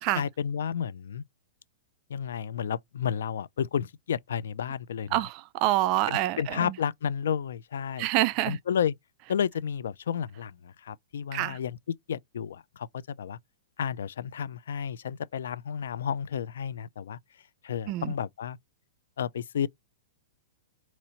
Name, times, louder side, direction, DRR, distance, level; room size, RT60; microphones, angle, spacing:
voice 1, 0.2-1.2 2.1-5.2 6.1-8.1 8.5-8.9 9.3-11.8 12.1-13.4 13.8-17.2 17.6-18.6 19.2-19.7, left 8 dB, 75° left, 0.4 m, -31 dB
voice 2, 5.1-6.7 8.0-8.6 11.3-11.6 17.9-18.1, right 16 dB, 40° right, 0.3 m, -27 dB
4.2 x 2.9 x 2.8 m
hypercardioid pair, 145°, 0 cm